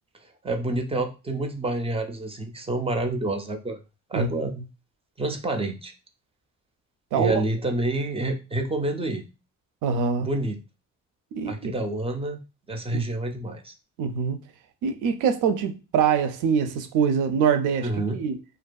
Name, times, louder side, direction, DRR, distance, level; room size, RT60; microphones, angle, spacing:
voice 1, 0.4-3.8 4.1-4.6 5.2-5.9 7.1-9.3 10.2-10.6 11.5-12.4 12.7-13.7 17.8-18.2, right 2 dB, 20° right, 0.3 m, -28 dB
voice 2, 9.8-10.3 11.3-11.7 12.9-13.0 14.0-14.4 14.8-18.4, right 6 dB, 85° right, 0.5 m, -24 dB
2.5 x 2.3 x 2.2 m
cardioid pair, 90°, 30 cm